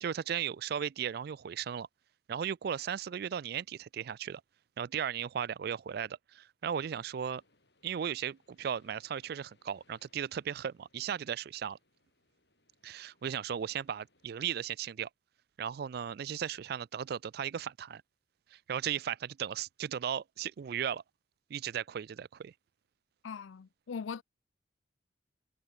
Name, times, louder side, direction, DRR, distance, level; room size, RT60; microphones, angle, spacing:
voice 1, 0.0-1.9 2.3-4.4 4.8-7.4 7.8-11.8 12.8-15.1 15.6-18.0 18.5-21.0 21.5-22.5, right 8 dB, 55° right, 0.3 m, -36 dB
sound 1, 6.8-14.5, left 2 dB, 60° left, 6.2 m, -71 dB
voice 2, 23.2-24.2, left 6 dB, 85° left, 0.4 m, -40 dB
head